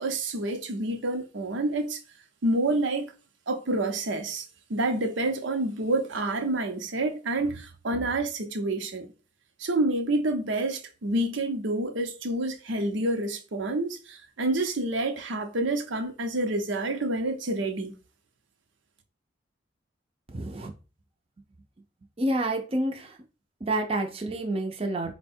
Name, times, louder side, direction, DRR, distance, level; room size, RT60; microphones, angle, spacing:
voice 1, 0.0-2.0 2.4-3.1 3.5-4.4 4.7-9.1 9.6-17.9, right 2 dB, 85° right, 0.7 m, -28 dB
voice 2, 20.3-20.7 22.2-23.2 23.6-25.1, right 1 dB, 30° right, 0.5 m, -28 dB
4.2 x 2.2 x 4.4 m
head